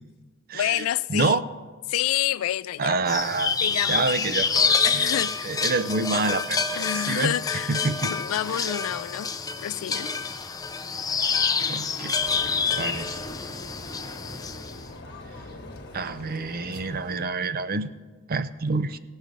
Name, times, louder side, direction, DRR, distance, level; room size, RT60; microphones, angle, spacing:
voice 1, 0.5-1.4 1.9-3.0 3.6-4.1 4.8-5.6 6.8-9.3 9.6-10.1, left 12 dB, 75° left, 0.3 m, -28 dB
voice 2, 1.1-1.4 2.8-3.6 3.9-5.0 5.4-7.4 7.7-8.1 8.5-8.6 11.7-12.2 12.8-13.1 15.9-17.9 18.3-19.0, right 3 dB, 45° right, 0.5 m, -27 dB
sound 1, 3.1-14.8, left 5 dB, 20° left, 0.5 m, -27 dB
sound 2, 12.2-17.2, left 2 dB, 50° left, 1.4 m, -42 dB
18.0 x 6.4 x 5.2 m
head